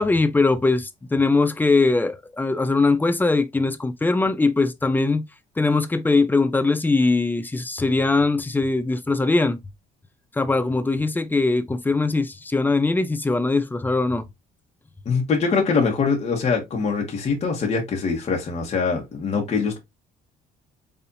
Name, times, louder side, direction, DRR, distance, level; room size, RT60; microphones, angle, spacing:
voice 1, 0.0-5.2 5.6-9.6 10.3-14.3, left 3 dB, 10° left, 0.6 m, -21 dB
voice 2, 15.0-19.8, left 5 dB, 40° left, 1.3 m, -23 dB
4.2 x 3.4 x 2.7 m
cardioid pair, 110°, 17 cm